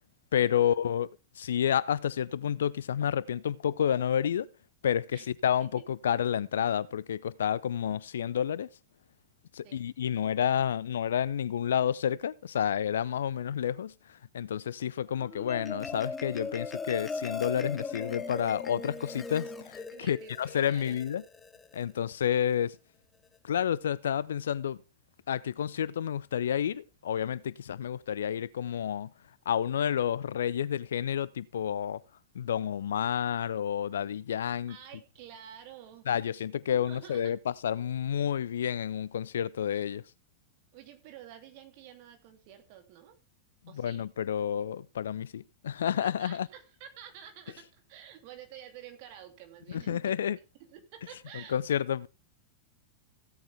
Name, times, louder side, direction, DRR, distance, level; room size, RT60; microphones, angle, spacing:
voice 1, 0.3-1.1 1.4-4.5 4.8-8.7 9.5-21.2 21.7-22.8 23.4-24.8 25.3-29.1 29.5-32.0 32.3-34.8 36.1-40.0 43.7-46.5 49.7-50.4 51.5-52.1, left 9 dB, 65° left, 0.5 m, -30 dB
Marimba xylophone, 15.2-21.8, left 4 dB, 15° left, 0.9 m, -39 dB
voice 2, 19.9-21.0 34.7-36.1 36.8-37.3 40.7-43.2 43.7-44.1 46.0-50.2 50.7-51.6, right 9 dB, 45° right, 2.8 m, -49 dB
16.0 x 8.7 x 3.5 m
figure-of-eight pair, 90°, 0 cm